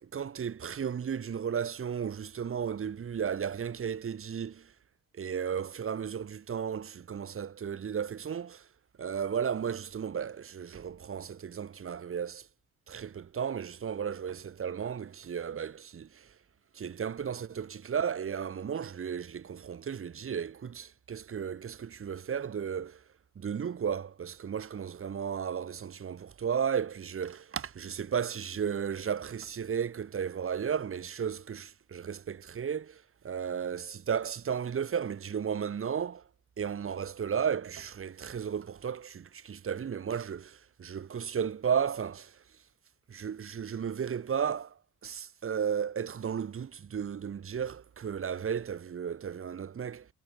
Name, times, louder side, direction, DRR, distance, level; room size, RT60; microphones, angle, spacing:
voice 1, 0.0-4.7 5.1-8.7 9.0-12.5 12.9-16.3 16.7-23.0 23.4-36.3 36.6-42.4 43.1-50.1, right 7 dB, 45° right, 2.6 m, -34 dB
cardioid pair, 90°, 30 cm